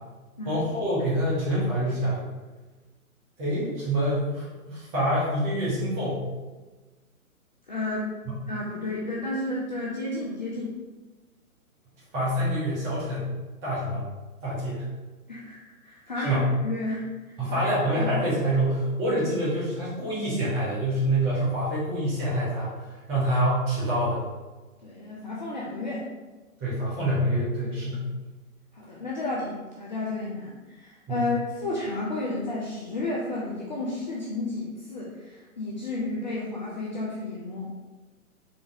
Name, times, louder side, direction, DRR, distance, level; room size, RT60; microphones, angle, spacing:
voice 1, 0.4-2.3 3.4-6.3 12.1-13.2 13.6-14.1 14.4-14.8 16.2-16.5 17.4-24.2 26.6-28.1 31.1-31.3, right 1 dB, 20° right, -8 dB, 1.4 m, -26 dB
voice 2, 7.7-8.1 8.5-10.7 15.3-15.6 15.8-17.7 18.0-18.1 24.8-26.0 28.7-37.7, left 2 dB, 35° left, -4 dB, 0.5 m, -32 dB
4.1 x 3.3 x 2.8 m, 1.2 s
figure-of-eight pair, 130°, 43 cm